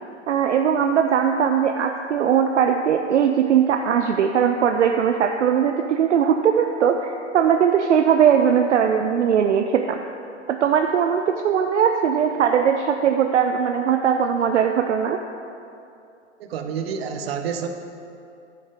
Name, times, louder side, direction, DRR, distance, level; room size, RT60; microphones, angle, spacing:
voice 1, 0.3-10.0 10.5-15.2, right 8 dB, 70° right, 5 dB, 0.6 m, -20 dB
voice 2, 16.4-17.7, right 7 dB, 55° right, 6 dB, 1.0 m, -28 dB
11.0 x 9.4 x 3.6 m, 2.6 s
figure-of-eight pair, 115°, 37 cm